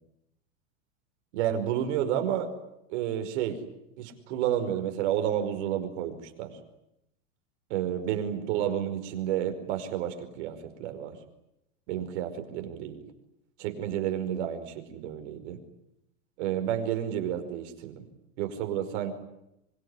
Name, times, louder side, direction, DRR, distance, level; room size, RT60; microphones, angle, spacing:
voice 1, 1.3-2.5 2.9-3.6 4.0-6.6 7.7-11.2 11.9-13.0 13.6-15.6 16.4-18.0 18.4-19.1, right 10 dB, 60° right, 6 dB, 5.1 m, -30 dB
25.0 x 23.5 x 9.8 m, 0.84 s
hypercardioid pair, 125°, 37 cm